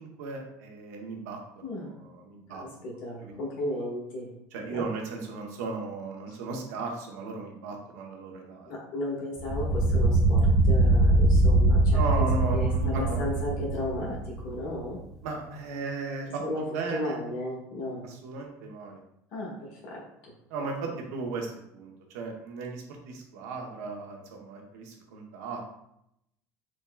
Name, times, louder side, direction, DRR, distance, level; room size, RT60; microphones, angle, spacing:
voice 1, 0.0-1.4 1.8-2.6 3.2-3.4 4.5-8.7 11.9-13.2 15.2-17.2 18.0-19.0 20.5-25.6, right 4 dB, 80° right, 1 dB, 0.8 m, -36 dB
voice 2, 2.5-4.3 4.7-4.8 6.3-6.4 8.7-12.2 12.5-15.0 16.4-18.1 19.3-20.0, left 1 dB, 60° left, -4 dB, 1.3 m, -35 dB
sound 1, 9.4-14.7, right 2 dB, ahead, 0.5 m, -23 dB
6.1 x 2.2 x 2.2 m, 0.79 s
hypercardioid pair, 85°, 8 cm